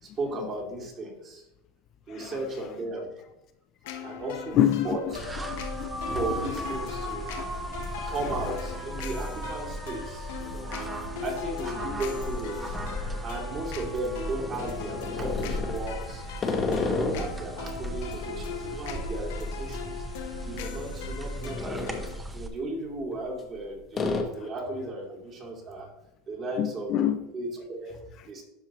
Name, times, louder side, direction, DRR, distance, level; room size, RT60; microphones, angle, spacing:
voice 1, 0.0-1.4 2.1-3.1 4.0-4.6 4.8-5.2 6.0-7.3 8.1-10.7 11.2-12.8 13.2-16.2 16.7-20.0 20.4-22.0 22.3-25.9 26.3-28.4, right 2 dB, 35° right, -1 dB, 2.4 m, -35 dB
sound 1, 3.8-22.2, left 7 dB, 85° left, 0.9 m, -40 dB
sound 2, 4.5-4.6 5.1-5.6 5.8-6.9 7.2-7.3 8.3-8.5 9.2-9.4 9.6-9.7 10.7-13.8 14.3-17.4 17.8-20.2 20.4-20.6 21.1-22.2 23.0-23.6 23.9-24.2, left 4 dB, 25° left, 1.0 m, -33 dB
voice 2, 4.6-5.0 5.5-6.1 7.3-7.8 26.6-27.2, left 11 dB, 45° left, 8 dB, 0.4 m, -27 dB
sound 3, 5.1-22.5, right 1 dB, 10° right, 0.8 m, -37 dB
11.5 x 4.6 x 3.0 m, 0.91 s
supercardioid pair, 135°, 0 cm